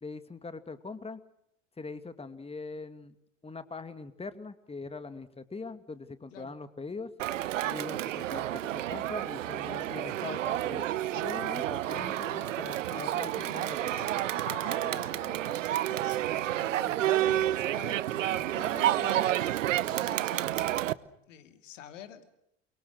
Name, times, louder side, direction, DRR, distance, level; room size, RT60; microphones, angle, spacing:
voice 1, 0.0-1.2 1.8-3.1 3.4-7.1 7.7-13.9, left 4 dB, 15° left, 11 dB, 2.2 m, -42 dB
Crowd, 7.2-20.9, right 13 dB, 80° right, 0.9 m, -30 dB
sound 1, 11.1-13.2 14.4-16.7, left 8 dB, 50° left, 2.7 m, -51 dB
voice 2, 13.2-19.6 19.9-22.3, left 9 dB, 75° left, 9 dB, 2.8 m, -49 dB
29.5 x 23.5 x 6.4 m, 0.78 s
hypercardioid pair, 70°, 37 cm